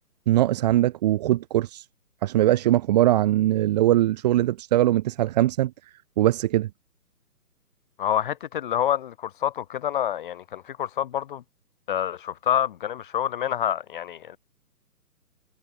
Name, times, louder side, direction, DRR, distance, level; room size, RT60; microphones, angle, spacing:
voice 1, 0.3-1.9 2.2-5.7 6.2-6.7, right 14 dB, 25° right, 2.2 m, -21 dB
voice 2, 8.0-11.4 11.9-14.4, left 10 dB, 30° left, 2.3 m, -27 dB
figure-of-eight pair, 150°, 47 cm